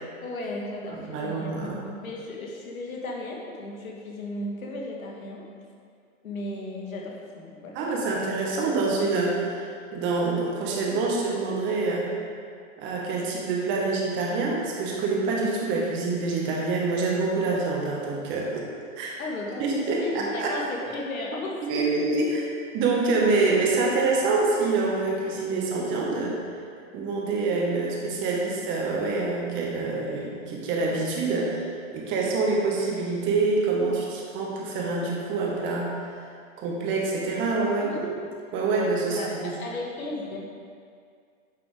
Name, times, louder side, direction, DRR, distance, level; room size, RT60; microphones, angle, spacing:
voice 1, 0.2-5.4 6.2-7.8 19.2-22.0 37.8-38.0 39.1-40.5, left 2 dB, 85° left, -2 dB, 1.8 m, -35 dB
voice 2, 0.9-1.8 7.7-12.1 12.8-18.7 19.0-19.1 19.6-20.5 21.6-22.4 22.7-26.4 26.9-35.9 36.6-37.9 38.5-39.5, right 3 dB, 30° right, -2 dB, 1.6 m, -26 dB
9.6 x 5.9 x 3.6 m, 2.2 s
hypercardioid pair, 140°, 41 cm